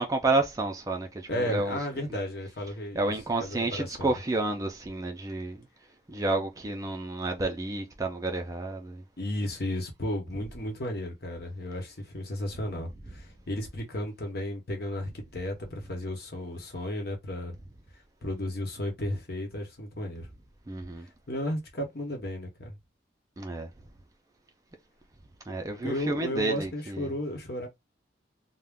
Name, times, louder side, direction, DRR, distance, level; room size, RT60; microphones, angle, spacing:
voice 1, 0.0-1.8 2.9-5.6 6.1-9.0 20.7-21.1 23.4-23.7 25.5-27.1, right 2 dB, 20° right, 0.4 m, -30 dB
voice 2, 1.3-3.1 3.4-4.2 9.2-17.5 18.2-20.3 21.3-22.8 25.8-27.7, left 1 dB, 55° left, 1.0 m, -34 dB
2.4 x 2.1 x 3.5 m
head